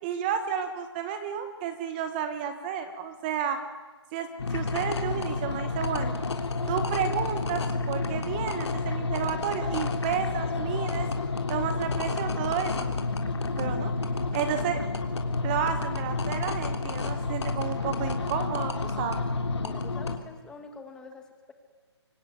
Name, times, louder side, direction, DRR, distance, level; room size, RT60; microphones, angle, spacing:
voice 1, 0.0-3.6 4.1-6.1 6.7-11.1 11.5-12.9 13.6-13.9 14.3-14.8 15.4-19.3, right 8 dB, 20° right, 9 dB, 1.3 m, -31 dB
sound 1, 4.4-20.2, left 3 dB, 70° left, 3.4 m, -30 dB
voice 2, 19.6-21.5, left 4 dB, 5° left, 6 dB, 1.6 m, -46 dB
26.5 x 24.0 x 9.4 m, 1.3 s
hypercardioid pair, 165°, 15 cm